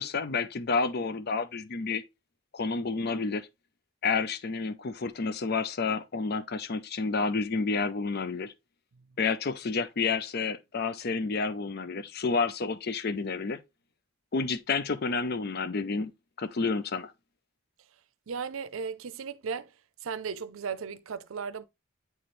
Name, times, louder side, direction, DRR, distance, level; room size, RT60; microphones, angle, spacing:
voice 1, 0.0-2.0 2.5-3.5 4.0-8.5 9.2-13.6 14.3-16.1 16.4-17.1, left 4 dB, 50° left, 0.6 m, -30 dB
voice 2, 18.3-19.7 20.0-21.7, right 6 dB, 80° right, 0.5 m, -36 dB
9.0 x 4.3 x 3.2 m
head